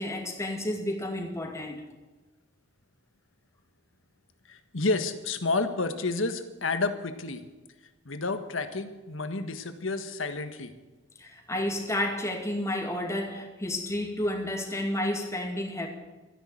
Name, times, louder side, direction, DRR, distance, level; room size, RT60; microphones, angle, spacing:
voice 1, 0.0-1.8 11.2-15.9, left 1 dB, 15° left, 2.5 m, -31 dB
voice 2, 4.5-7.4 8.0-10.7, left 3 dB, 80° left, 1.5 m, -30 dB
14.0 x 10.5 x 8.6 m
head